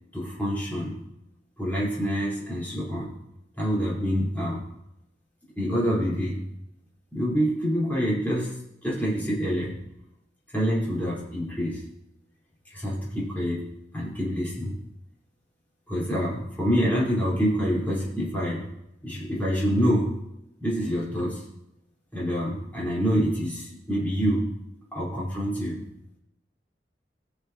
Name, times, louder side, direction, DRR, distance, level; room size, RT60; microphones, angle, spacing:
voice 1, 0.1-1.0 1.6-3.2 3.6-4.6 5.6-6.4 7.1-8.5 8.8-9.8 10.5-11.8 12.7-14.8 15.9-18.7 19.0-20.1 20.6-21.4 22.1-24.5 24.9-25.8, equal, 10° left, -6 dB, 3.9 m, -26 dB
18.5 x 6.8 x 2.8 m, 0.84 s
head